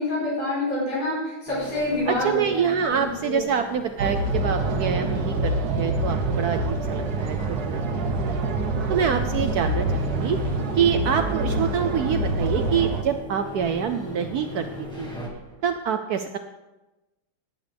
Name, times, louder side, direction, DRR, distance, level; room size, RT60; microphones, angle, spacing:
voice 1, 0.0-3.4, left 1 dB, 80° left, -8 dB, 5.7 m, -27 dB
sound 1, 1.5-15.3, equal, ahead, 1.5 m, -39 dB
voice 2, 2.1-8.5 8.9-14.7 15.0-15.1 15.6-16.4, right 7 dB, 75° right, 8 dB, 0.9 m, -26 dB
sound 2, 3.9-15.7, right 2 dB, 20° right, 1.3 m, -37 dB
sound 3, 4.0-13.0, right 2 dB, 60° right, 1.3 m, -26 dB
18.0 x 8.9 x 3.4 m, 1.0 s
omnidirectional pair, 2.2 m